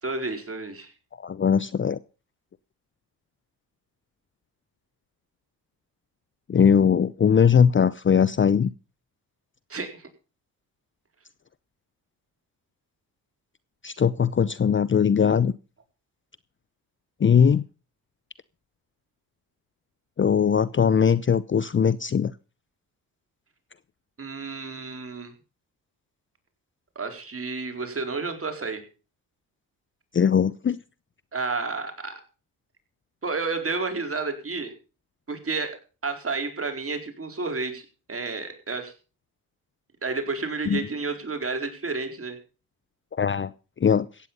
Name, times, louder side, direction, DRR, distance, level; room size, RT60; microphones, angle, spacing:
voice 1, 0.0-0.9 9.7-10.1 24.2-25.3 26.9-28.8 31.3-32.2 33.2-34.7 35.3-35.8 36.0-38.9 40.0-42.4, right 3 dB, 35° right, 4.4 m, -31 dB
voice 2, 1.2-2.0 6.5-8.7 13.8-15.5 17.2-17.6 20.2-22.3 30.1-30.8 40.7-40.8 43.1-43.5 43.8-44.1, left 7 dB, 30° left, 0.7 m, -20 dB
15.5 x 9.4 x 5.5 m
supercardioid pair, 60°, 39 cm